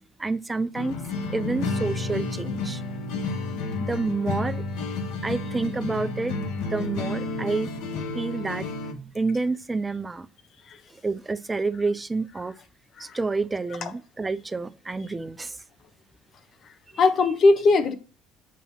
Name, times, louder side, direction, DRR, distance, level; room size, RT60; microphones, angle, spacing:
voice 1, 0.2-1.0 1.3-3.1 3.8-4.6 5.2-6.3 6.7-10.3 11.0-12.5 13.0-15.6, right 3 dB, 15° right, 0.3 m, -29 dB
sound 1, 0.7-8.9, left 3 dB, 75° left, 0.9 m, -31 dB
voice 2, 17.0-17.9, left 3 dB, 40° left, 0.7 m, -20 dB
7.2 x 2.8 x 5.5 m
cardioid pair, 140°, 0 cm